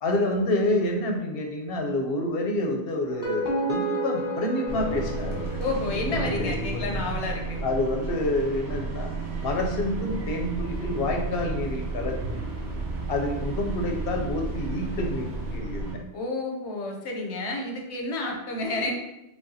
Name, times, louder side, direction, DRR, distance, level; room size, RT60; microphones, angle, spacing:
voice 1, 0.0-5.6 6.1-6.9 7.6-9.1 9.4-12.4 13.1-16.0, left 1 dB, 65° left, 2 dB, 0.8 m, -28 dB
sound 1, 3.0-6.2, right 1 dB, 20° left, 0.8 m, -31 dB
sound 2, 4.7-15.9, right 3 dB, 75° right, 1.2 m, -32 dB
voice 2, 5.6-7.6 16.1-18.9, left 2 dB, 90° left, 1 dB, 1.0 m, -30 dB
sound 3, 9.2-15.6, right 4 dB, 50° right, 0.5 m, -40 dB
4.9 x 2.3 x 2.7 m, 0.92 s
omnidirectional pair, 1.1 m